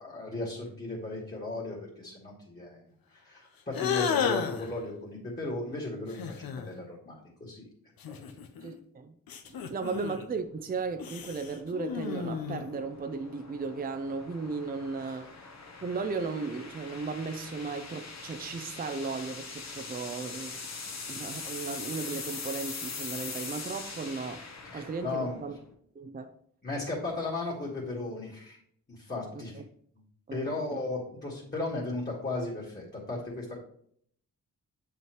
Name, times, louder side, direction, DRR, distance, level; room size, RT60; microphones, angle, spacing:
voice 1, 0.0-2.8 3.1-7.7 8.1-8.3 15.0-15.2 24.7-25.4 26.6-28.6 28.9-29.5 30.3-33.6, left 2 dB, 25° left, 1.9 m, -36 dB
sound 1, 3.7-4.7 6.1-6.7 8.0-8.8 9.3-10.3 11.0-12.8, left 7 dB, 85° left, 0.7 m, -33 dB
voice 2, 8.6-9.1 9.5-15.5 15.8-20.6 21.1-24.5 24.7-25.5 26.0-26.3 29.3-29.6 30.3-30.8, right 4 dB, 25° right, 0.5 m, -36 dB
sound 2, 9.5-25.7, left 4 dB, 50° left, 1.1 m, -43 dB
7.4 x 5.6 x 3.1 m
cardioid pair, 80°, 34 cm